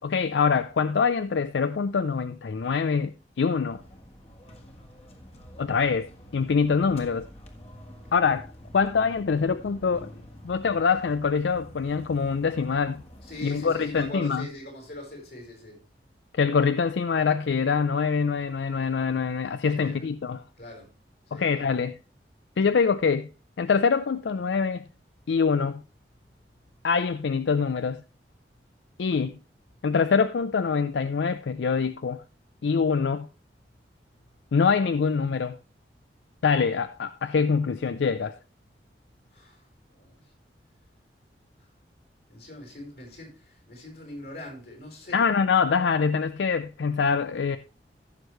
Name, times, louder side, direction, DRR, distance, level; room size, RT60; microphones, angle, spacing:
voice 1, 0.0-3.8 5.6-6.1 6.3-7.3 8.1-8.5 8.7-10.1 10.4-13.0 13.4-14.5 16.3-20.4 21.3-22.0 22.6-23.3 23.6-24.9 25.3-25.8 26.8-28.0 29.0-29.4 29.8-32.2 32.6-33.3 34.5-35.6 36.4-38.3 45.1-47.6, left 5 dB, 85° left, 0.4 m, -24 dB
sound 1, 3.7-14.1, equal, 35° left, 1.5 m, -48 dB
voice 2, 13.2-15.8 19.7-20.1 20.6-20.9 21.3-21.7 39.3-39.6 39.9-40.3 42.3-45.3, left 1 dB, 65° left, 4.6 m, -42 dB
15.0 x 6.3 x 3.2 m
head